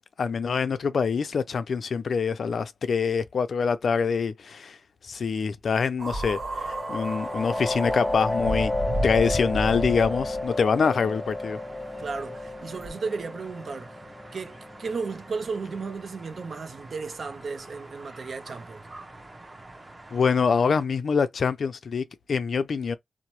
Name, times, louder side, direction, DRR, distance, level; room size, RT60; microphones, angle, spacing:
voice 1, 0.2-4.8 5.0-8.7 9.0-11.6 20.1-23.0, left 5 dB, 75° left, 0.4 m, -25 dB
sound 1, 6.0-10.5 11.3-11.4 12.8-12.9, right 1 dB, 85° right, 0.9 m, -32 dB
sound 2, 6.3-15.8, left 2 dB, 10° left, 0.4 m, -32 dB
sound 3, 7.0-20.8, right 2 dB, 25° right, 0.7 m, -47 dB
voice 2, 12.0-14.0 14.3-18.8, right 4 dB, 65° right, 0.5 m, -34 dB
2.8 x 2.0 x 3.0 m
wide cardioid pair, 95°, 0 cm